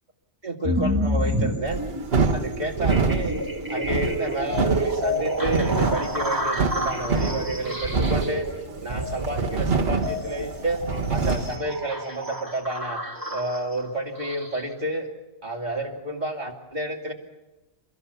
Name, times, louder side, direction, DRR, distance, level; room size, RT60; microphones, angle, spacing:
voice 1, 0.4-1.8 2.3-3.4 3.7-8.5 8.8-10.8 11.1-13.0 13.3-15.1 15.4-17.1, right 1 dB, 40° right, 0 dB, 2.9 m, -30 dB
sound 1, 0.6-14.7, equal, 15° right, 2.1 m, -30 dB
sound 2, 1.7-11.6, right 4 dB, 60° right, 1.6 m, -26 dB
29.0 x 14.5 x 7.1 m, 1.1 s
omnidirectional pair, 1.1 m